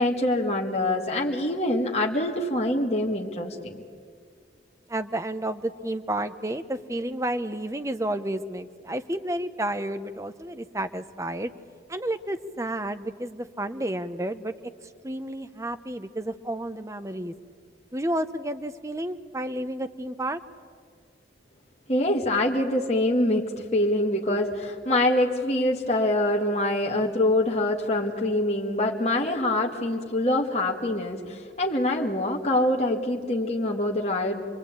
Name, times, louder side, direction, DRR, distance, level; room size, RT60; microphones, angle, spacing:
voice 1, 0.0-3.8 21.9-34.4, left 1 dB, 35° left, -1 dB, 1.8 m, -25 dB
voice 2, 4.9-11.5 11.9-14.5 15.0-17.3 17.9-20.4, right 1 dB, 15° right, 9 dB, 0.8 m, -31 dB
26.5 x 22.5 x 8.9 m, 2.1 s
head